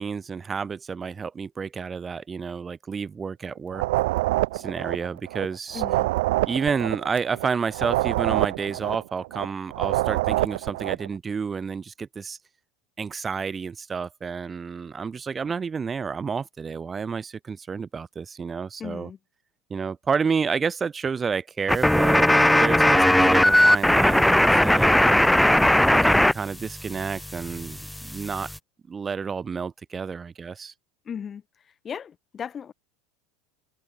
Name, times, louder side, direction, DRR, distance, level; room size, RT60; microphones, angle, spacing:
voice 1, 0.0-3.8 4.5-5.8 6.5-12.4 13.0-19.1 19.7-22.3 22.6-25.3 25.9-28.5 28.9-30.7, right 5 dB, 20° right, 4.6 m, -30 dB
sound 1, 3.7-5.5 5.7-9.5 9.7-11.1, right 19 dB, 80° right, 1.7 m, -26 dB
voice 2, 5.7-6.1 18.8-19.2 22.6-22.8 31.0-31.4 31.8-32.7, left 7 dB, 30° left, 6.0 m, -36 dB
sound 2, 21.7-26.3 26.6-28.6, left 1 dB, 5° left, 1.5 m, -19 dB
supercardioid pair, 120°, 0 cm